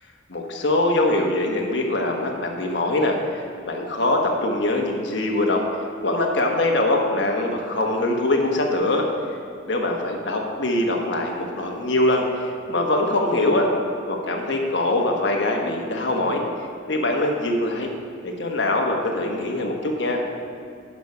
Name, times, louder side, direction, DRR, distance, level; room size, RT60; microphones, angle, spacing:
voice 1, 0.3-5.6 6.0-9.1 9.7-13.7 14.1-16.4 16.9-17.9 18.2-20.2, left 2 dB, 70° left, 1 dB, 1.2 m, -23 dB
11.0 x 5.4 x 4.9 m, 2.4 s
head